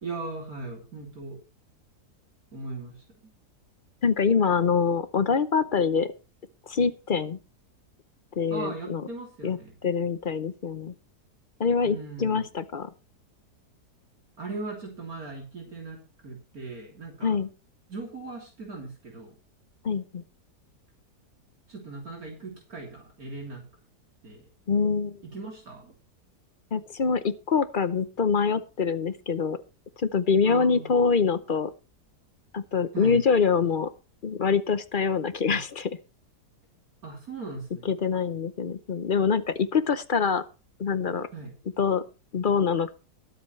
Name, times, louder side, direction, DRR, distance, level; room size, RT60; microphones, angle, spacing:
voice 1, 0.0-1.4 2.5-3.0 8.5-9.7 11.8-12.4 14.4-16.0 16.2-17.4 17.9-19.4 21.7-23.6 24.2-24.5 25.2-25.9 30.5-31.0 32.9-33.2 35.5-35.6 37.0-37.9 41.3-41.5, right 3 dB, 60° right, 0 dB, 3.7 m, -38 dB
voice 2, 4.0-6.1 6.7-7.4 8.4-9.0 9.4-10.9 11.6-12.9 17.2-17.5 19.8-20.2 24.7-25.2 26.7-29.6 30.0-31.7 32.5-33.9 34.2-35.9 37.8-40.4 40.8-41.3 41.8-42.0 42.3-43.0, left 5 dB, 45° left, 13 dB, 0.7 m, -25 dB
22.5 x 8.1 x 3.2 m, 0.31 s
omnidirectional pair, 1.8 m